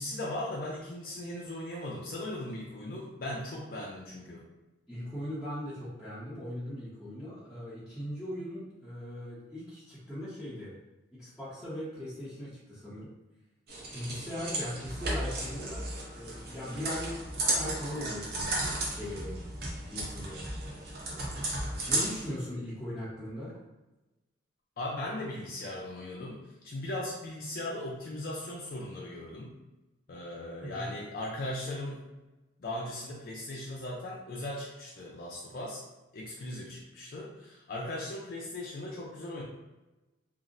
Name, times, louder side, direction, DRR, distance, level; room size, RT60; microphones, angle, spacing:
voice 1, 0.0-4.4 24.8-29.5 30.1-32.0 32.6-35.8 36.1-39.4, left 1 dB, 50° left, -4 dB, 0.4 m, -38 dB
voice 2, 4.9-10.8 11.2-13.1 13.9-18.7 19.0-19.5 19.8-20.6 21.9-23.6 30.6-30.9, equal, 5° left, -14 dB, 0.7 m, -39 dB
sound 1, 13.7-22.3, right 1 dB, 50° right, 0.7 m, -34 dB
2.5 x 2.0 x 3.8 m, 1.1 s
head